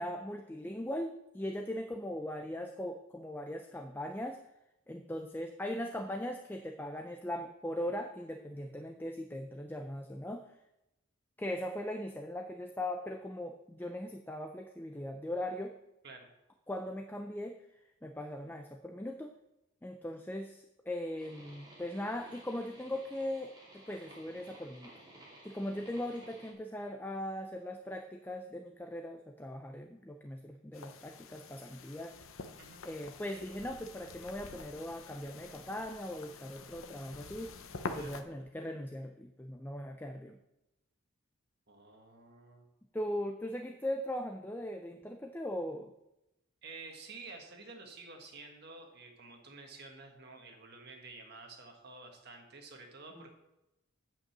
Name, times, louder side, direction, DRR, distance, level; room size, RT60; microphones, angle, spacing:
voice 1, 0.0-4.4 4.9-10.4 11.4-15.7 16.7-17.6 18.0-19.3 19.8-24.9 25.4-32.2 32.8-37.5 37.9-40.4 42.9-45.9 53.2-53.3, left 1 dB, 10° left, 5 dB, 0.4 m, -39 dB
sound 1, 21.2-26.5, right 1 dB, 20° right, 2.6 m, -55 dB
sound 2, 30.7-38.2, left 3 dB, 70° left, 0.8 m, -47 dB
voice 2, 41.7-42.7 46.6-53.3, right 3 dB, 50° right, 3 dB, 1.6 m, -50 dB
8.7 x 5.3 x 7.3 m, 0.91 s
head